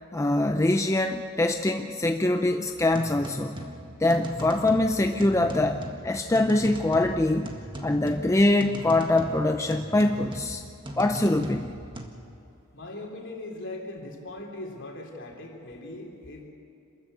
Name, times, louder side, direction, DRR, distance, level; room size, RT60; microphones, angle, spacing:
voice 1, 0.1-3.6 4.0-7.5 7.8-10.6 11.0-11.7, left 2 dB, 15° left, 5 dB, 0.5 m, -24 dB
sound 1, 2.8-12.1, right 1 dB, 20° right, 1.7 m, -39 dB
voice 2, 12.7-16.5, left 2 dB, 55° left, 0 dB, 3.7 m, -39 dB
27.5 x 14.5 x 8.1 m, 2.7 s
head